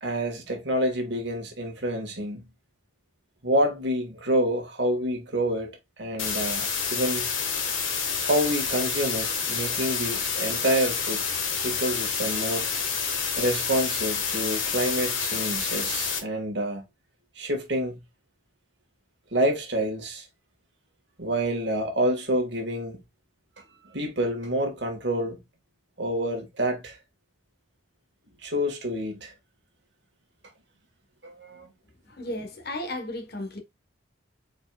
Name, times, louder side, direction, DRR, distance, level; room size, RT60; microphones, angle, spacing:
voice 1, 0.0-2.5 3.4-7.3 8.2-11.2 11.6-12.7 13.4-16.8 17.3-18.0 19.3-20.2 21.2-23.0 23.8-25.4 26.0-27.0 28.4-29.3 31.2-31.7, equal, 60° right, 1.6 m, -28 dB
sound 1, 6.2-16.2, left 6 dB, 85° left, 1.4 m, -28 dB
voice 2, 32.1-33.6, left 1 dB, 50° left, 1.1 m, -34 dB
4.5 x 4.5 x 2.3 m
head